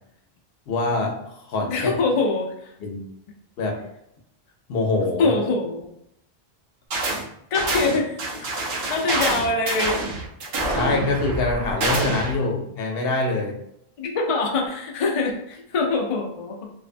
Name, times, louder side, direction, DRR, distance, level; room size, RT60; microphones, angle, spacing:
voice 1, 0.7-1.2 1.5-1.9 2.8-3.1 3.6-3.8 4.7-5.3 10.7-13.6, left 2 dB, 70° left, 1 dB, 0.8 m, -24 dB
voice 2, 1.7-2.7 5.2-5.9 7.5-8.2 8.6-10.0 14.0-16.7, left 3 dB, 55° left, 1 dB, 0.4 m, -24 dB
sound 1, 6.9-7.2 7.5-12.4, right 2 dB, 80° right, 0.8 m, -26 dB
2.5 x 2.1 x 2.5 m, 0.76 s
omnidirectional pair, 1.0 m